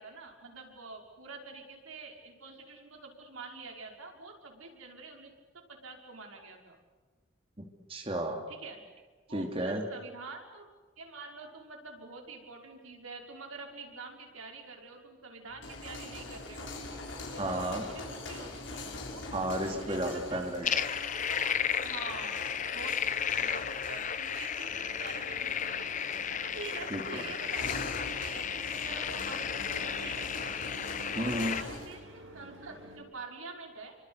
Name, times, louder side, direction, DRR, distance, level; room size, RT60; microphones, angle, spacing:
voice 1, 0.0-6.8 8.5-8.8 9.3-10.7 11.0-16.7 17.3-19.3 19.6-20.4 20.8-23.1 23.4-25.9 26.3-30.6 31.2-34.0, right 3 dB, 90° right, 2 dB, 5.7 m, -46 dB
voice 2, 7.6-8.5 9.3-9.8 17.4-17.8 19.3-20.9 26.9-27.2 31.1-31.6, right 1 dB, 25° right, 2 dB, 2.8 m, -33 dB
sound 1, 15.5-31.9, left 2 dB, 65° left, 5.5 m, -44 dB
sound 2, 20.6-31.6, left 8 dB, 35° left, 0.9 m, -34 dB
sound 3, 24.7-33.0, right 1 dB, 70° right, 7.2 m, -50 dB
28.5 x 25.0 x 8.1 m, 1.3 s
head